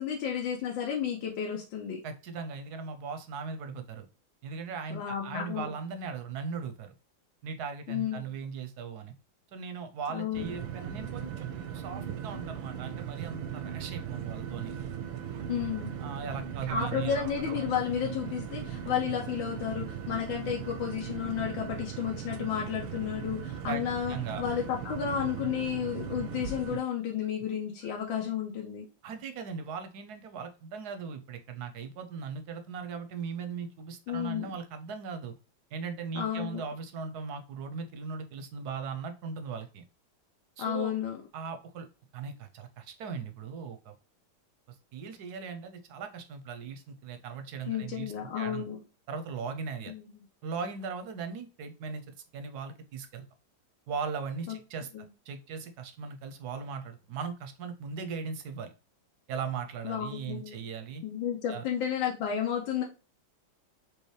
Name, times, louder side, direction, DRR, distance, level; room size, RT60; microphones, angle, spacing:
voice 1, 0.0-2.0 4.9-5.7 7.9-8.3 10.1-10.4 15.5-15.9 16.7-28.9 34.1-34.5 36.1-36.6 40.6-41.2 47.7-48.8 49.9-50.2 54.5-54.6 54.9-55.0 59.8-60.6 61.0-62.8, left 8 dB, 80° left, -1 dB, 1.5 m, -32 dB
voice 2, 2.0-4.1 4.4-6.9 7.4-9.1 9.5-11.5 11.7-14.7 16.0-17.2 23.7-23.8 24.1-24.4 29.0-35.3 35.7-39.8 40.6-40.9 41.3-41.9 42.1-43.9 44.7-48.7 49.1-49.9 50.4-53.3 53.9-58.7 59.3-61.0 61.5-61.6, right 5 dB, 70° right, 7 dB, 1.0 m, -38 dB
sound 1, 10.3-26.8, right 8 dB, 90° right, 1.4 m, -38 dB
4.7 x 2.7 x 3.1 m, 0.32 s
omnidirectional pair, 2.1 m